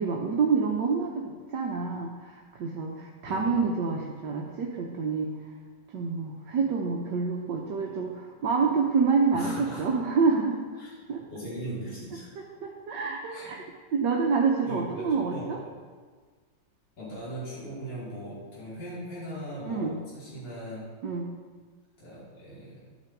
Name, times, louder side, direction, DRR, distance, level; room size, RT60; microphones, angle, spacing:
voice 1, 0.0-5.3 5.9-10.6 11.1-11.2 12.6-13.6 13.9-15.6 19.6-20.0 21.0-21.3, right 5 dB, 70° right, -1 dB, 1.6 m, -27 dB
voice 2, 3.3-3.6 8.6-8.7 9.3-9.8 10.8-11.0 11.3-12.3 13.3-13.4 14.6-15.5 17.0-20.8 22.0-22.8, right 1 dB, 70° left, -10 dB, 4.7 m, -39 dB
13.0 x 8.8 x 4.6 m, 1.5 s
omnidirectional pair, 2.0 m